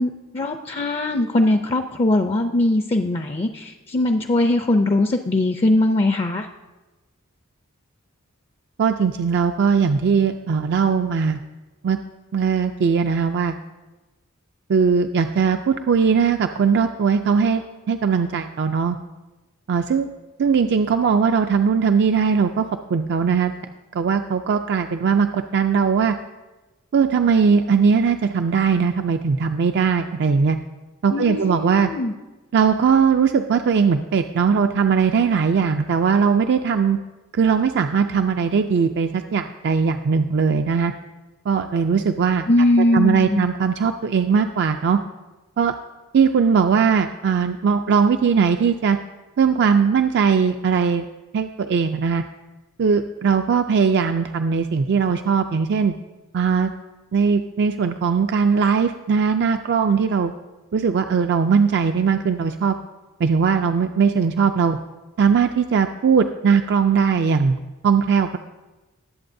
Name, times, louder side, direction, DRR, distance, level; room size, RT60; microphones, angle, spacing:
voice 1, 0.0-6.5 31.1-32.1 42.5-43.5, left 1 dB, 30° left, 6 dB, 0.4 m, -20 dB
voice 2, 8.8-11.4 11.8-12.0 12.3-13.6 14.7-19.0 19.7-20.1 20.4-23.5 23.9-26.2 26.9-30.6 31.0-31.9 32.5-37.0 37.3-40.9 41.5-42.5 42.9-45.0 45.6-45.7 46.1-49.0 49.4-51.1 51.3-52.2 52.8-55.9 56.3-56.7 57.1-60.3 60.7-62.8 63.2-64.8 65.2-67.6 67.8-68.4, right 6 dB, 55° right, 7 dB, 0.4 m, -19 dB
19.0 x 7.7 x 2.6 m, 1.2 s
head